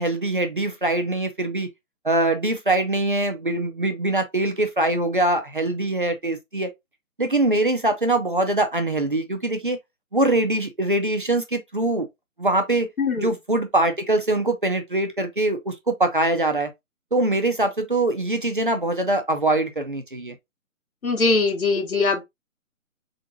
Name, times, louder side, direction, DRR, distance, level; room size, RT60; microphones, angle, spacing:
voice 1, 0.0-1.7 2.0-6.7 7.2-9.8 10.1-12.1 12.4-12.9 13.2-16.7 17.1-20.3, right 2 dB, 40° right, 0.6 m, -23 dB
voice 2, 13.0-13.3 21.0-22.2, left 3 dB, 80° left, 1.8 m, -21 dB
4.3 x 3.8 x 2.7 m
hypercardioid pair, 180°, 42 cm